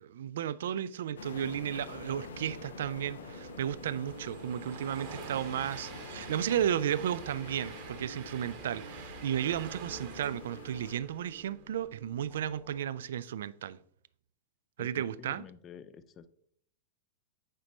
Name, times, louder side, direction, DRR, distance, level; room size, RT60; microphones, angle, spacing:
voice 1, 0.0-13.8 14.8-15.4, right 10 dB, 60° right, 0.3 m, -34 dB
sound 1, 1.2-10.9, left 4 dB, 70° left, 0.7 m, -47 dB
sound 2, 1.4-12.8, right 5 dB, 5° right, 1.0 m, -53 dB
Train, 2.7-11.8, right 7 dB, 45° right, 1.0 m, -49 dB
voice 2, 14.8-16.3, left 7 dB, 30° left, 0.5 m, -49 dB
8.7 x 5.2 x 3.9 m
figure-of-eight pair, 90°, 0 cm